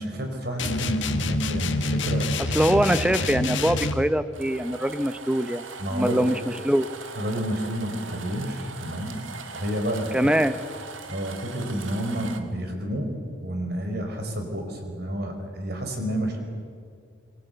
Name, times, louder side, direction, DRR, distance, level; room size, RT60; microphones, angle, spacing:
voice 1, 0.0-2.3 5.8-6.3 7.1-9.2 9.5-10.2 11.1-13.1 13.4-16.4, equal, 50° right, 4 dB, 5.0 m, -30 dB
sound 1, 0.6-4.1, left 2 dB, 65° left, 1.7 m, -27 dB
voice 2, 2.5-6.9 10.1-10.6, equal, 5° right, 11 dB, 0.7 m, -23 dB
sound 2, 4.3-12.4, right 4 dB, 75° right, 2.2 m, -40 dB
27.0 x 23.0 x 8.1 m, 2.2 s
head